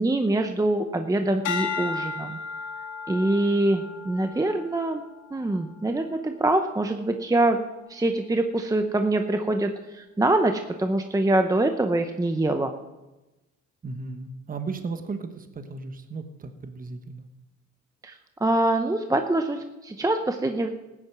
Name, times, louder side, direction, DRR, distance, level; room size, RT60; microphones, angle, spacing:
voice 1, 0.0-2.4 3.1-5.0 5.3-7.6 7.9-12.7 18.0-20.7, right 2 dB, 10° right, 6 dB, 0.7 m, -24 dB
sound 1, 1.4-5.9 6.5-6.9, left 5 dB, 80° left, 2.2 m, -35 dB
voice 2, 13.8-17.2, right 4 dB, 30° right, 8 dB, 1.1 m, -35 dB
14.0 x 9.8 x 6.1 m, 1.1 s
cardioid pair, 90°, 30 cm